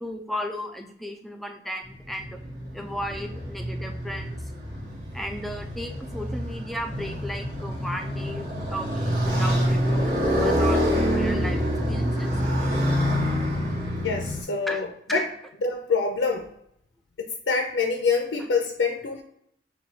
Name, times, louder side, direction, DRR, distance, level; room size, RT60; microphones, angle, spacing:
voice 1, 0.0-2.4 2.7-4.4 5.1-12.3 14.7-14.8 15.1-15.2, equal, ahead, 4 dB, 0.4 m, -35 dB
Motorcycle, 1.9-14.4, equal, 65° right, 1.4 m, -26 dB
voice 2, 14.0-15.3 15.6-16.5 17.2-19.2, left 4 dB, 80° left, 3 dB, 0.5 m, -26 dB
6.7 x 2.3 x 2.7 m, 0.73 s
head